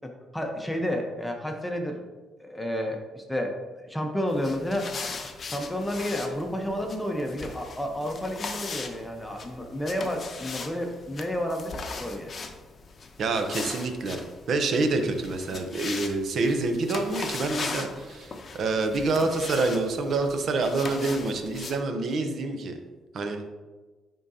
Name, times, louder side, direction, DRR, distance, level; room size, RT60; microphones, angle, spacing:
voice 1, 0.0-2.0 2.4-5.0 5.5-12.3, equal, 5° left, 3 dB, 0.9 m, -31 dB
sound 1, 4.3-21.8, left 4 dB, 45° left, 0.7 m, -39 dB
voice 2, 13.2-14.2 14.5-22.8 23.1-23.4, right 3 dB, 60° right, 6 dB, 0.7 m, -27 dB
10.0 x 3.8 x 2.8 m, 1.3 s
cardioid pair, 90°, 0 cm